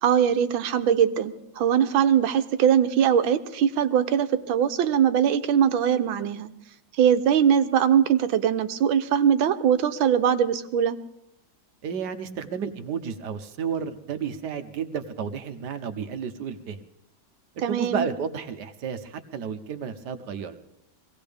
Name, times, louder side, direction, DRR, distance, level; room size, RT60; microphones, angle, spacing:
voice 1, 0.0-6.5 7.0-11.0 17.6-18.0, right 8 dB, 80° right, 10 dB, 1.6 m, -21 dB
voice 2, 11.8-16.8 17.6-20.6, right 6 dB, 60° right, 9 dB, 1.4 m, -32 dB
23.5 x 17.5 x 3.5 m, 0.85 s
omnidirectional pair, 2.1 m